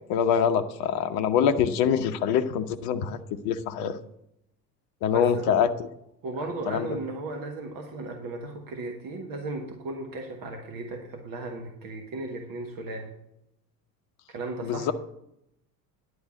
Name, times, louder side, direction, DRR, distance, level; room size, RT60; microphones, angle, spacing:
voice 1, 0.0-3.2 3.4-3.9 5.0-5.9 6.7-6.9 14.6-14.9, left 8 dB, 45° left, 8 dB, 0.8 m, -24 dB
voice 2, 5.1-5.7 6.2-13.1 14.3-14.9, right 2 dB, 45° right, 3 dB, 1.5 m, -36 dB
10.5 x 4.7 x 7.8 m, 0.80 s
figure-of-eight pair, 65°, 49 cm